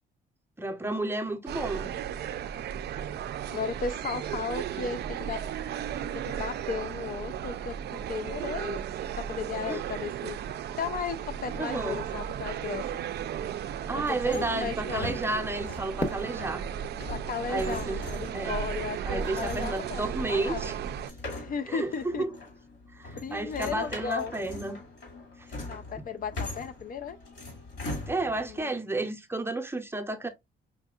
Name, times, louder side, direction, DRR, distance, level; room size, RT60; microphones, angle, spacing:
voice 1, 0.6-1.9 9.7-9.8 11.5-12.0 13.9-16.6 17.5-18.0 18.3-18.6 19.1-20.7 21.7-22.3 23.0-24.8 28.1-30.3, right 2 dB, 10° right, 0.6 m, -32 dB
sound 1, 1.5-21.1, right 9 dB, 55° right, 0.4 m, -35 dB
voice 2, 3.5-5.4 6.1-8.8 9.1-10.4 10.7-12.9 14.0-15.2 17.1-20.7 21.4-22.2 23.1-24.6 25.7-27.2 28.5-28.8, left 6 dB, 45° left, 0.4 m, -35 dB
sound 2, 14.0-28.6, left 2 dB, 65° left, 2.2 m, -42 dB
Fireworks, 16.0-19.0, left 2 dB, 20° left, 0.8 m, -39 dB
5.0 x 2.7 x 2.3 m
cardioid pair, 90°, 20 cm